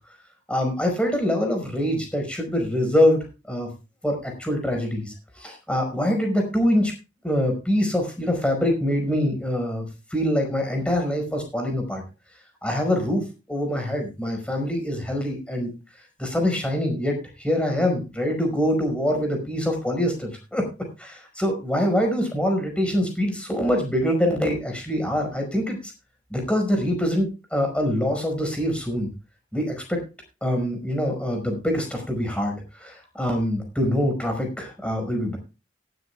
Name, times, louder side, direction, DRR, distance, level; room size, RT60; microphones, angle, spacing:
voice 1, 0.5-3.7 4.0-6.9 7.2-12.0 12.6-15.7 16.2-20.7 21.0-25.8 26.3-29.1 29.5-30.0 30.4-35.4, equal, 5° left, 3 dB, 5.1 m, -24 dB
18.0 x 13.0 x 2.3 m, 0.30 s
head